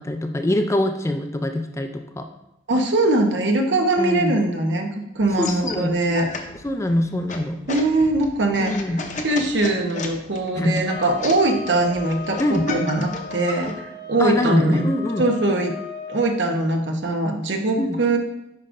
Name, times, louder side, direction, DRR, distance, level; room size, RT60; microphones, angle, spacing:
voice 1, 0.0-2.3 4.0-4.4 5.4-6.0 6.6-7.6 8.6-9.0 10.6-10.8 12.4-12.7 14.2-15.3 17.8-18.0, left 1 dB, 15° left, 6 dB, 0.4 m, -23 dB
voice 2, 2.7-4.9 5.1-6.3 7.7-8.8 9.2-14.9 15.2-15.7 16.1-18.2, right 2 dB, 65° right, 3 dB, 1.0 m, -21 dB
sound 1, 5.2-13.7, left 3 dB, 40° left, 0.7 m, -35 dB
sound 2, 10.8-16.3, left 4 dB, 70° left, 0.9 m, -36 dB
9.4 x 5.1 x 2.6 m, 0.91 s
head